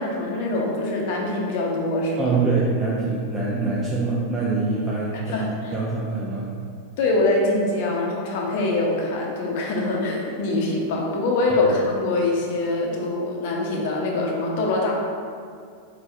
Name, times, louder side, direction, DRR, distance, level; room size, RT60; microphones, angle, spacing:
voice 1, 0.0-2.4 5.3-5.7 7.0-14.9, left 2 dB, 50° left, -1 dB, 0.8 m, -24 dB
voice 2, 2.2-6.5 11.5-11.6, right 3 dB, 20° right, -5 dB, 0.6 m, -24 dB
4.6 x 4.4 x 2.5 m, 2.2 s
figure-of-eight pair, 90°, 0 cm